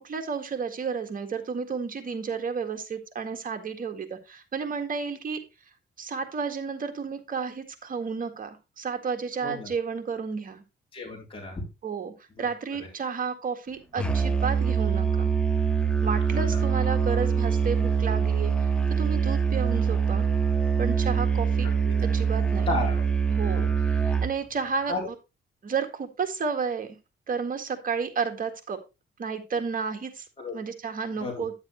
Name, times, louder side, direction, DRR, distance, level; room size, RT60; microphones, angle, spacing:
voice 1, 0.0-5.4 6.0-10.6 11.8-12.1 12.4-15.3 16.0-20.3 20.8-21.7 22.0-22.7 23.3-25.1 25.6-27.0 27.3-28.8 29.2-30.3 30.5-31.5, right 5 dB, 45° right, 7 dB, 1.8 m, -32 dB
voice 2, 10.9-11.6 16.3-16.4 22.7-23.0 23.5-23.7 24.9-25.0 30.4-30.5 31.2-31.4, left 2 dB, 30° left, -1 dB, 3.6 m, -32 dB
Musical instrument, 14.0-24.4, right 6 dB, 5° left, 1.4 m, -24 dB
10.0 x 7.3 x 3.1 m, 0.26 s
cardioid pair, 90°, 20 cm